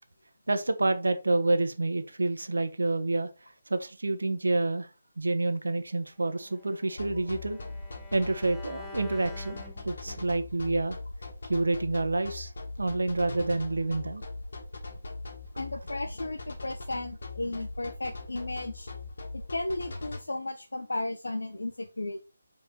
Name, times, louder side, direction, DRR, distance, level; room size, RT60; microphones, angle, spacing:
voice 1, 0.5-3.3 3.7-4.9 5.2-7.6 8.1-11.0 11.5-12.5 12.8-14.2, right 2 dB, 80° right, 1.1 m, -28 dB
Bowed string instrument, 6.2-10.4, left 3 dB, 10° left, 1.0 m, -49 dB
sound 1, 7.0-20.2, left 3 dB, 65° left, 2.8 m, -40 dB
voice 2, 15.6-18.9 19.3-22.2, left 2 dB, 80° left, 0.8 m, -34 dB
5.6 x 4.6 x 4.4 m
figure-of-eight pair, 155°, 0 cm